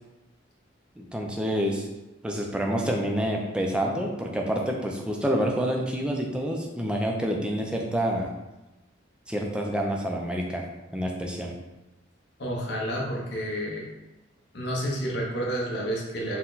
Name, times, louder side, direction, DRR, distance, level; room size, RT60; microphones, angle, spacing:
voice 1, 1.0-1.9 2.2-8.3 9.3-10.6 10.9-11.5, equal, 5° right, 0 dB, 0.4 m, -28 dB
voice 2, 12.4-13.8 14.5-16.4, equal, 60° left, -3 dB, 0.8 m, -30 dB
4.4 x 2.2 x 3.8 m, 1.0 s
head